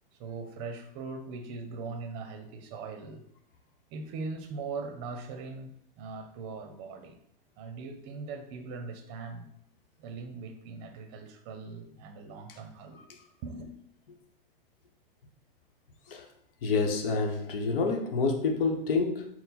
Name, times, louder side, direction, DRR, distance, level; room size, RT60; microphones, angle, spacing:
voice 1, 0.2-3.2 3.9-7.2 7.6-9.5 10.0-13.0 13.4-13.7, right 4 dB, 35° right, 6 dB, 0.6 m, -40 dB
voice 2, 16.6-19.3, left 4 dB, 70° left, 3 dB, 0.9 m, -28 dB
4.2 x 2.1 x 4.1 m, 0.72 s
hypercardioid pair, 135°, 29 cm